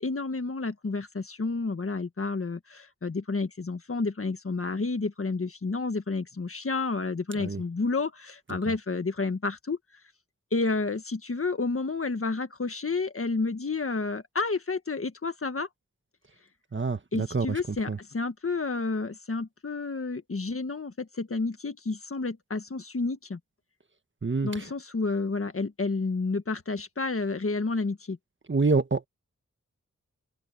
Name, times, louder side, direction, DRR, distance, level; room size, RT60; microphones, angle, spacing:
voice 1, 0.0-9.8 10.5-15.7 17.1-23.4 24.4-28.2, left 3 dB, 50° left, 1.6 m, -30 dB
voice 2, 16.7-17.6 17.9-18.0 24.2-24.6 28.5-29.1, right 4 dB, 40° right, 1.5 m, -26 dB
wide cardioid pair, 95°, 29 cm